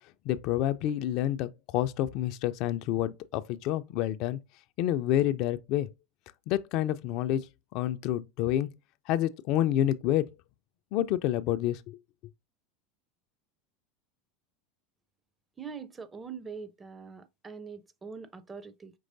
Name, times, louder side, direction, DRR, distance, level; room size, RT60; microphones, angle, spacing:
voice 1, 0.3-4.4 4.8-5.9 6.5-7.5 7.7-8.7 9.1-10.3 10.9-12.0, left 12 dB, 55° left, 0.3 m, -28 dB
voice 2, 15.6-18.9, right 5 dB, 20° right, 0.5 m, -43 dB
5.3 x 3.1 x 2.5 m
hypercardioid pair, 85°, 0 cm